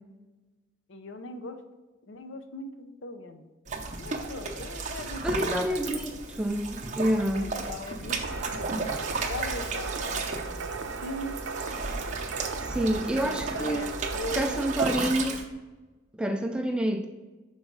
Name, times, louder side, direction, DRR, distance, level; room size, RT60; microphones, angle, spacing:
voice 1, 0.9-1.6 2.1-3.5 4.0-6.0 7.3-11.4 13.2-14.5, left 2 dB, 75° left, 8 dB, 0.6 m, -40 dB
sound 1, 3.7-15.4, right 3 dB, 40° right, 0.7 m, -34 dB
voice 2, 5.2-7.5 12.6-13.9 14.3-15.4 16.2-17.1, right 1 dB, 5° right, 4 dB, 0.3 m, -28 dB
sound 2, 8.2-15.1, right 4 dB, 75° right, 0.5 m, -37 dB
6.0 x 4.0 x 5.2 m, 1.2 s
head